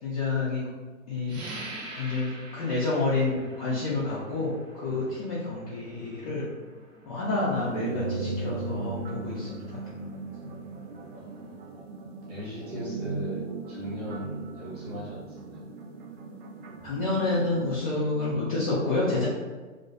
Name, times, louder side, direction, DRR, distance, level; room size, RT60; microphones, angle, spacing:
voice 1, 0.0-0.7 1.1-1.4 1.9-6.5 7.1-9.8 16.8-19.3, left 3 dB, 30° left, -9 dB, 0.4 m, -29 dB
sound 1, 1.3-11.6, right 2 dB, 70° right, 0.8 m, -47 dB
sound 2, 7.5-17.8, right 3 dB, 50° right, 0.4 m, -37 dB
voice 2, 11.1-11.7 12.3-15.6, left 1 dB, 25° right, -7 dB, 1.0 m, -40 dB
2.4 x 2.1 x 2.4 m, 1.3 s
hypercardioid pair, 125°, 41 cm